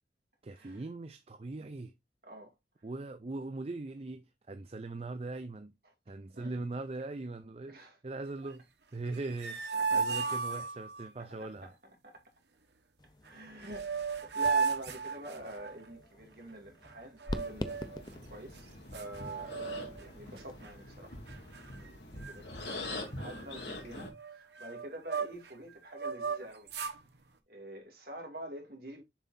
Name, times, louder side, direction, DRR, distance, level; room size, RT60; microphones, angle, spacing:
voice 1, 0.4-1.9 2.8-5.7 6.1-8.7 8.9-11.7, right 2 dB, 35° right, 0.5 m, -40 dB
voice 2, 6.1-6.6 7.7-8.0 9.7-10.3 11.2-11.7 12.0-12.2 13.2-26.7 27.5-29.0, right 1 dB, 55° right, 2.5 m, -47 dB
sound 1, 9.1-11.1 13.3-13.4 13.6-15.8 17.2-18.0 18.6-18.7 18.9-20.0 20.4-20.7 21.3-21.9 22.2-22.4 22.6-25.5 25.9-27.0, right 5 dB, 70° right, 1.1 m, -35 dB
sound 2, 13.0-20.7, left 1 dB, 25° left, 0.6 m, -46 dB
sound 3, 17.3-24.1, left 2 dB, 70° left, 3.0 m, -44 dB
7.1 x 5.6 x 2.6 m
head